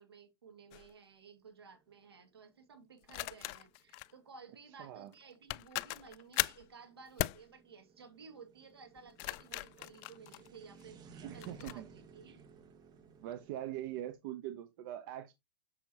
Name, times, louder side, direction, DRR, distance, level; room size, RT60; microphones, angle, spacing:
voice 1, 0.0-12.5, right 5 dB, 90° right, 2.3 m, -56 dB
sound 1, 0.7-0.9 3.1-4.1 5.1-5.2 5.5-6.7 7.2-7.4 9.0-10.8 11.4-11.8, left 21 dB, 45° left, 0.4 m, -38 dB
sound 2, 1.7-14.1, right 5 dB, 30° right, 1.5 m, -59 dB
voice 2, 4.8-5.1 11.2-11.8 13.2-15.3, right 12 dB, 55° right, 0.9 m, -42 dB
7.3 x 6.7 x 2.9 m
hypercardioid pair, 105°, 13 cm